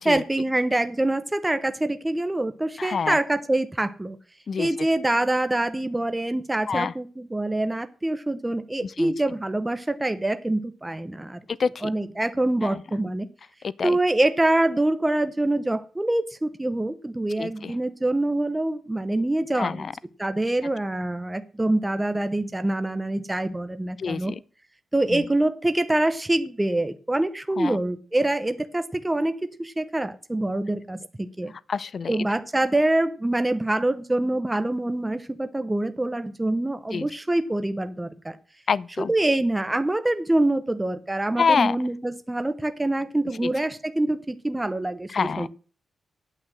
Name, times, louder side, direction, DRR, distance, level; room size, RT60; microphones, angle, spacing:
voice 1, 0.0-4.2 4.6-11.4 11.8-13.3 13.8-19.9 20.2-24.3 24.9-31.5 32.1-38.4 39.0-45.5, right 1 dB, 10° right, 0.7 m, -25 dB
voice 2, 2.8-3.2 4.5-4.7 6.7-6.9 8.8-9.1 11.6-11.9 12.6-12.7 13.6-14.0 17.4-17.7 19.6-19.9 24.0-24.3 25.1-25.2 27.6-27.8 31.7-32.2 36.9-37.1 38.7-39.1 41.4-41.8 43.4-43.5 45.1-45.5, left 5 dB, 45° left, 0.4 m, -26 dB
9.0 x 8.0 x 7.6 m
wide cardioid pair, 145°, 0 cm